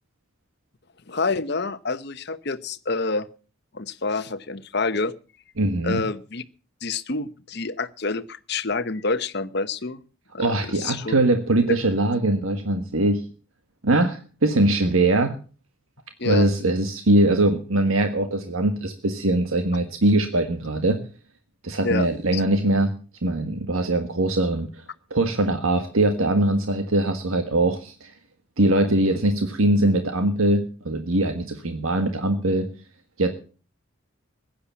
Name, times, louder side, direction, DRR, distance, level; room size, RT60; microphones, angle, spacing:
voice 1, 1.1-3.3 3.7-5.1 5.8-6.4 6.8-10.0 10.3-11.1 11.7-11.8 16.2-16.5 21.8-22.1 22.3-22.4, left 3 dB, 50° left, 12 dB, 1.0 m, -27 dB
voice 2, 5.6-6.1 10.4-13.2 13.8-15.3 16.2-21.0 21.6-22.9 23.2-24.8 25.1-28.1 28.6-32.7 33.2-33.3, right 1 dB, 80° right, 7 dB, 1.6 m, -22 dB
16.0 x 10.0 x 7.1 m, 0.39 s
head